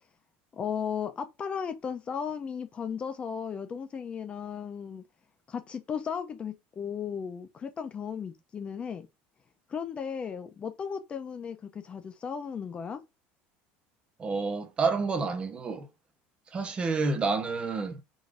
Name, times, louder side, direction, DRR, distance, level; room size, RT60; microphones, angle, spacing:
voice 1, 0.5-5.0 5.5-9.1 9.7-13.0, left 7 dB, 25° left, 0.5 m, -35 dB
voice 2, 14.2-15.9 16.5-18.0, right 4 dB, 25° right, 0.8 m, -29 dB
3.9 x 2.6 x 4.8 m
cardioid pair, 150°, 5 cm